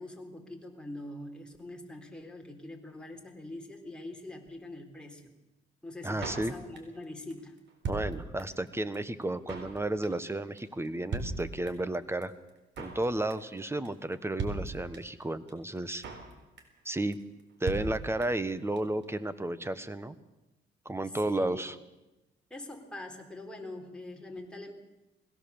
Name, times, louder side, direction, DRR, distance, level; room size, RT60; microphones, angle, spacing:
voice 1, 0.0-5.2 5.8-7.5 21.2-21.6 22.5-24.7, left 2 dB, 5° left, 1 dB, 3.9 m, -43 dB
voice 2, 6.0-6.5 7.9-12.3 12.8-16.0 16.8-17.2 17.6-20.2 20.8-21.8, right 1 dB, 10° right, 13 dB, 1.3 m, -32 dB
Drum kit, 6.2-7.0 7.3-7.4 7.6-8.7 8.9-9.0 9.2-9.8 10.0-10.3 10.6-10.7 10.8-10.9 11.1-11.9 12.2-12.3 12.5-13.0 13.3-13.6 13.8-13.9 14.1-14.2 14.4-15.2 15.5-15.6 15.8-16.3 16.6-16.9 17.1-17.2 17.4-17.5 17.7-18.5 18.8-18.9 19.0-19.1, right 3 dB, 65° right, 4.1 m, -37 dB
21.0 x 17.0 x 7.2 m, 1.0 s
cardioid pair, 90°, 20 cm